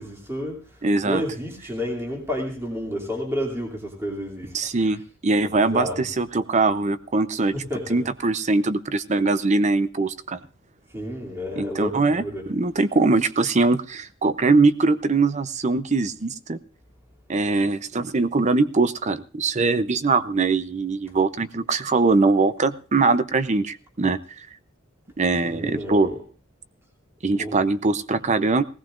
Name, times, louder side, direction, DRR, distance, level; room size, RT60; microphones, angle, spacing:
voice 1, 0.0-4.9 5.4-6.0 7.5-8.0 10.9-12.5 25.4-26.2 27.4-27.6, left 1 dB, 15° right, 0 dB, 2.7 m, -31 dB
voice 2, 0.8-1.2 4.5-7.5 7.9-10.4 11.6-12.2 12.5-16.6 17.3-24.2 25.2-26.1 27.2-28.6, right 3 dB, 35° right, 13 dB, 0.6 m, -22 dB
19.5 x 17.0 x 2.5 m, 0.36 s
head